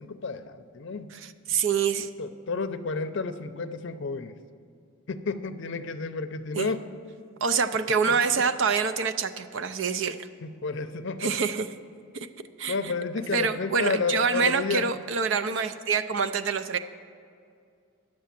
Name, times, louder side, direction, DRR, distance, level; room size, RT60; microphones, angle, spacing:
voice 1, 0.0-1.1 2.2-4.4 5.1-6.8 10.4-11.3 12.7-14.9, left 4 dB, 55° left, 9 dB, 0.6 m, -31 dB
voice 2, 1.1-2.1 6.5-6.7 7.4-10.3 11.2-11.7 12.1-12.3 12.6-12.9 13.3-16.8, right 5 dB, 60° right, 10 dB, 0.5 m, -26 dB
10.5 x 7.6 x 7.4 m, 2.3 s
head